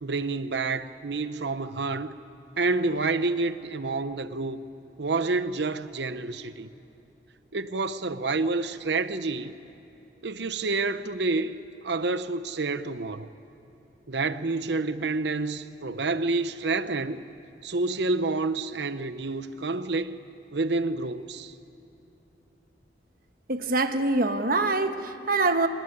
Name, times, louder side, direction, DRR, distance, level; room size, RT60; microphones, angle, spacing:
voice 1, 0.0-2.2 2.6-4.6 5.0-6.7 7.5-9.5 10.2-11.6 11.8-13.3 14.1-17.2 17.6-20.2 20.5-21.5, right 3 dB, 65° right, 0.9 m, -28 dB
voice 2, 23.5-25.7, right 2 dB, 50° right, 1.2 m, -24 dB
24.0 x 19.5 x 9.8 m
head